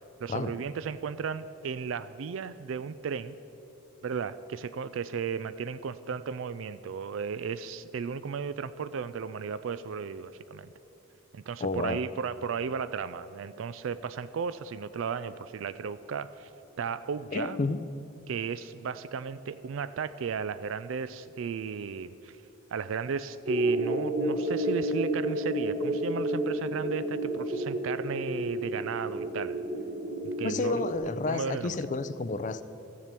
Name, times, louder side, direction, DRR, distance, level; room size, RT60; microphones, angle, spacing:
voice 1, 0.2-3.4 4.0-10.7 11.3-16.5 16.8-17.6 18.3-22.4 22.7-29.6 30.2-30.8 31.3-31.8, right 6 dB, 65° right, 0.4 m, -35 dB
voice 2, 11.6-12.1 17.3-17.9 30.4-32.6, left 3 dB, 35° left, 0.4 m, -30 dB
sound 1, 23.5-31.0, right 1 dB, 50° right, 2.8 m, -30 dB
14.0 x 7.4 x 8.3 m
head